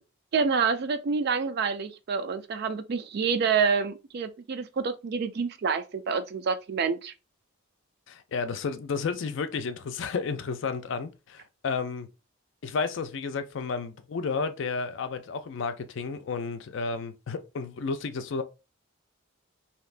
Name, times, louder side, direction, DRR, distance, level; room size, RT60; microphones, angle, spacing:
voice 1, 0.3-7.1, right 5 dB, 50° right, 0.3 m, -27 dB
voice 2, 8.1-12.1 12.6-18.4, left 4 dB, 60° left, 0.4 m, -32 dB
2.8 x 2.5 x 3.2 m
head